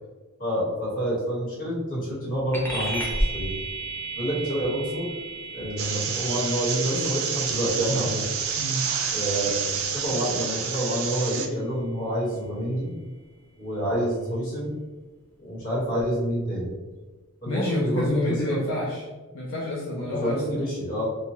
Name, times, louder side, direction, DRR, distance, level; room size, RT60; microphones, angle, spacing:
voice 1, 0.4-3.5 4.1-5.1 5.5-8.3 9.1-9.6 9.9-12.9 13.6-14.7 15.4-16.7 17.4-18.6 20.1-21.0, equal, 35° left, -7 dB, 1.2 m, -28 dB
sound 1, 2.5-12.4, right 1 dB, 10° left, 0.6 m, -35 dB
sound 2, 5.8-11.5, right 6 dB, 70° right, 0.4 m, -29 dB
voice 2, 17.4-19.1 19.3-20.6, left 1 dB, 65° left, -6 dB, 0.6 m, -29 dB
2.9 x 2.3 x 2.9 m, 1.3 s
head